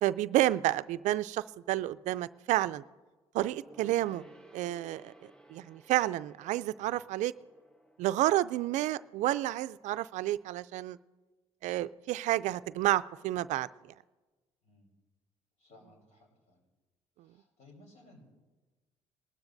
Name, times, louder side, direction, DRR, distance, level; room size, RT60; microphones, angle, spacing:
voice 1, 0.0-2.8 3.3-4.3 4.5-7.3 8.0-11.0 11.6-13.7, right 15 dB, 75° right, 16 dB, 0.4 m, -30 dB
Gong, 3.7-9.6 9.8-9.9, right 1 dB, 5° left, 1.1 m, -57 dB
voice 2, 14.6-14.9 15.6-16.7 17.2-18.2, left 2 dB, 65° left, 1 dB, 4.2 m, -59 dB
21.5 x 12.5 x 2.7 m, 1.3 s
supercardioid pair, 70°, 13 cm